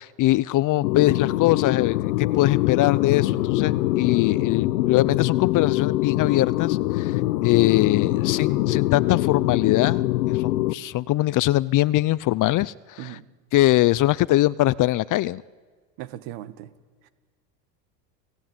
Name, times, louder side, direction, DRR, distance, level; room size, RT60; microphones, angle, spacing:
voice 1, 0.0-13.2 13.5-15.4, left 16 dB, 40° left, 20 dB, 0.6 m, -22 dB
sound 1, 0.8-10.7, left 17 dB, 80° left, 1.1 m, -23 dB
voice 2, 16.0-16.7 17.0-17.1, right 13 dB, 60° right, 12 dB, 1.9 m, -37 dB
30.0 x 17.5 x 9.1 m, 1.5 s
hypercardioid pair, 95°, 48 cm